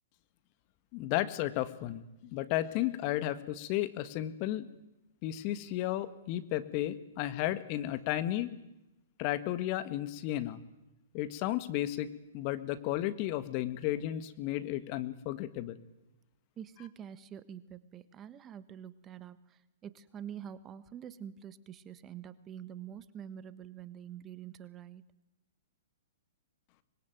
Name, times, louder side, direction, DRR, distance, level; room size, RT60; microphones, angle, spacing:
voice 1, 0.9-4.7 5.2-8.5 9.2-10.6 11.1-15.8, left 14 dB, 40° left, 12 dB, 1.7 m, -33 dB
voice 2, 16.6-25.0, right 9 dB, 25° right, 15 dB, 1.4 m, -46 dB
25.0 x 21.5 x 9.3 m, 0.93 s
hypercardioid pair, 115°, 0 cm